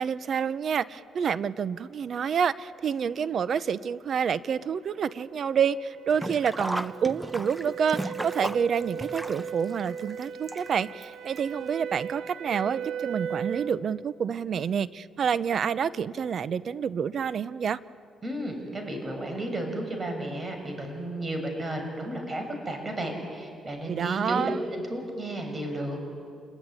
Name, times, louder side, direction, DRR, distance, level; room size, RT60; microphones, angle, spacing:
voice 1, 0.0-17.8 23.9-24.6, right 7 dB, 55° right, 16 dB, 0.8 m, -28 dB
sound 1, 3.9-13.8, right 7 dB, 90° right, 1.1 m, -38 dB
Sink (filling or washing), 6.1-11.0 11.4-11.5 12.5-12.6 12.9-13.0, right 1 dB, 10° right, 0.9 m, -35 dB
voice 2, 18.2-24.5 24.8-26.0, right 1 dB, 30° right, 4 dB, 6.3 m, -33 dB
28.0 x 21.5 x 10.0 m, 2.4 s
cardioid pair, 90°, 0 cm